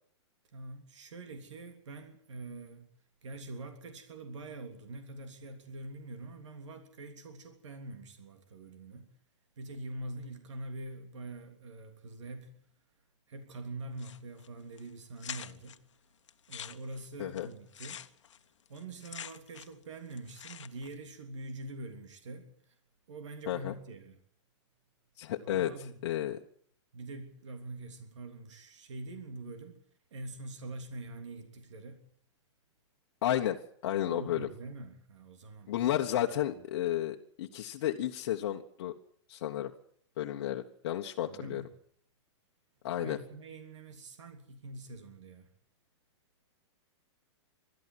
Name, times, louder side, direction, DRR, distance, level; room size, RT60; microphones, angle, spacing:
voice 1, 0.5-2.9 3.2-9.1 9.6-12.7 13.3-15.8 16.5-18.1 18.7-22.7 23.1-24.2 25.4-26.0 26.9-29.8 30.1-32.1 34.1-36.0 36.5-36.6 41.2-41.7 43.0-45.5, right 2 dB, 85° right, 6 dB, 3.2 m, -44 dB
sound 1, 14.0-14.5 14.8-14.9 15.2-15.8 16.3-19.8 20.1-20.9, left 9 dB, 90° left, 1.2 m, -46 dB
voice 2, 25.2-25.7 26.0-26.4 33.2-34.5 35.7-38.9 39.3-39.7 40.2-41.6 42.8-43.2, left 12 dB, 50° left, 1 dB, 1.3 m, -32 dB
22.0 x 13.0 x 9.8 m, 0.64 s
hypercardioid pair, 160°, 15 cm